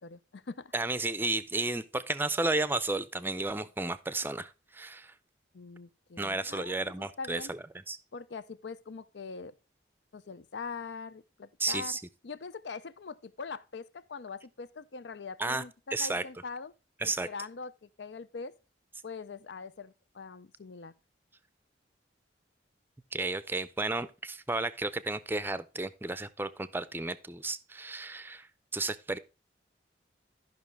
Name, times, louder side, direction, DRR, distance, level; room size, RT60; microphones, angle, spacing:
voice 1, 0.0-0.7 5.5-7.5 8.1-9.6 10.1-12.0 12.2-16.7 17.0-18.6 19.0-20.9, left 4 dB, 70° left, 0.6 m, -42 dB
voice 2, 0.7-5.1 6.2-7.6 7.9-8.0 11.6-12.0 15.4-15.6 15.9-16.2 17.0-17.3 23.1-29.2, right 2 dB, 10° right, 0.5 m, -33 dB
13.5 x 5.7 x 3.3 m
head